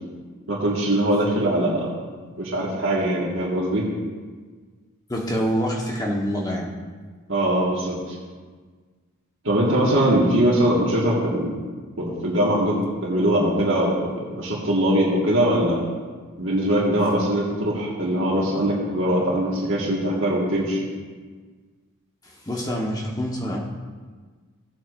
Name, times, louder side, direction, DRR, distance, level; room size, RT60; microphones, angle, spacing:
voice 1, 0.5-1.9 2.4-3.9 7.3-8.1 9.4-11.5 12.0-15.8 16.4-20.8, right 1 dB, 60° right, -6 dB, 1.8 m, -22 dB
voice 2, 5.1-6.7 22.4-23.6, equal, 15° left, -1 dB, 1.3 m, -26 dB
16.5 x 8.0 x 2.6 m, 1.5 s
head